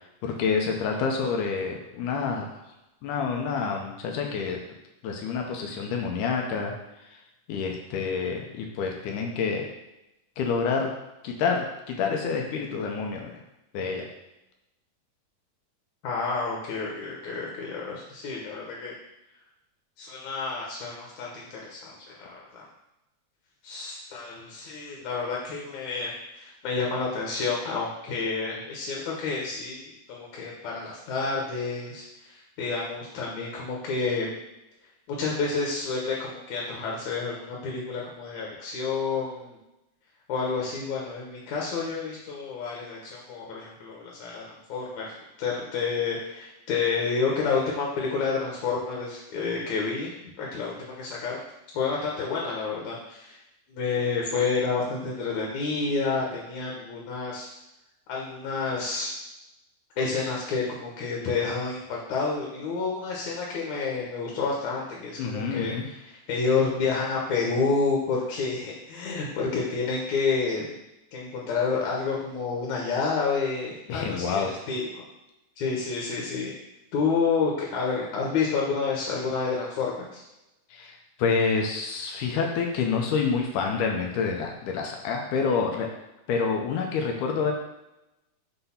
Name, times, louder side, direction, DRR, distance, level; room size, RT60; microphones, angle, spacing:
voice 1, 0.2-2.5 3.0-4.6 5.0-6.7 7.0-7.2 7.5-9.7 10.4-10.9 11.2-13.4 13.7-14.1 65.2-65.8 73.9-74.5 80.7-85.9 86.3-87.5, left 5 dB, 85° left, 1 dB, 2.4 m, -28 dB
voice 2, 16.0-18.9 20.0-21.9 22.2-22.7 23.6-34.3 35.2-39.6 40.3-45.1 45.4-51.4 51.7-53.4 53.7-57.5 58.1-59.1 60.0-70.7 71.1-75.0 75.6-76.5 76.9-80.2, left 4 dB, 70° left, -2 dB, 2.3 m, -29 dB
6.1 x 3.4 x 5.6 m, 0.92 s
omnidirectional pair, 3.5 m